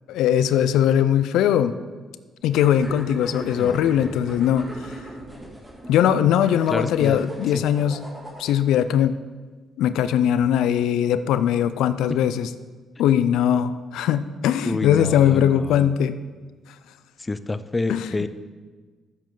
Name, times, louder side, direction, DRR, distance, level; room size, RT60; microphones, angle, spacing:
voice 1, 0.1-1.8 2.4-4.7 5.9-8.0 8.4-9.1 9.8-12.5 13.0-16.2 17.9-18.1, left 10 dB, 90° left, 12 dB, 0.4 m, -20 dB
sound 1, 2.5-8.7, equal, 10° right, 2.6 m, -39 dB
voice 2, 3.6-4.1 6.7-7.6 14.6-15.9 17.2-18.3, left 2 dB, 20° left, 13 dB, 0.5 m, -29 dB
14.0 x 7.5 x 3.8 m, 1.4 s
cardioid pair, 90°, 0 cm